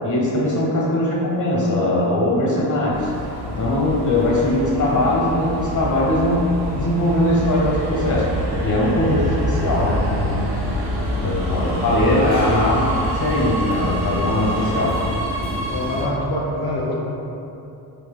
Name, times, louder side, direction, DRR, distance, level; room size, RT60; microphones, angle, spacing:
voice 1, 0.0-8.3 8.6-10.6 11.2-12.9 13.1-15.0, left 1 dB, 45° left, -4 dB, 1.2 m, -20 dB
Subway metro underground, 2.9-16.0, equal, 70° right, 1.0 m, -26 dB
voice 2, 15.7-17.0, left 1 dB, 75° left, -7 dB, 0.7 m, -25 dB
4.6 x 2.8 x 2.2 m, 2.8 s
supercardioid pair, 65°, 45 cm